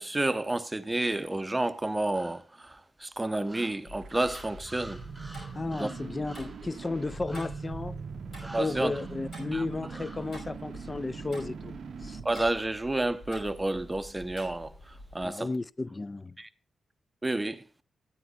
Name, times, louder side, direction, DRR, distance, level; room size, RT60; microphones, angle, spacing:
voice 1, 0.0-5.1 5.7-5.9 8.4-8.9 9.5-9.7 12.2-15.5 16.4-16.5 17.2-17.6, right 2 dB, 20° right, 0.8 m, -30 dB
sound 1, 2.1-2.7 3.4-6.7 7.3-7.7 8.3-9.2 9.9-10.3, right 1 dB, ahead, 4.5 m, -49 dB
Tick-tock, 3.8-15.3, left 1 dB, 60° left, 5.4 m, -47 dB
sound 2, 3.8-12.5, right 6 dB, 65° right, 0.5 m, -42 dB
voice 2, 5.5-8.1 8.6-11.8 12.0-12.2 15.2-16.3, left 3 dB, 30° left, 0.4 m, -34 dB
14.0 x 9.4 x 2.4 m
supercardioid pair, 45°, 0 cm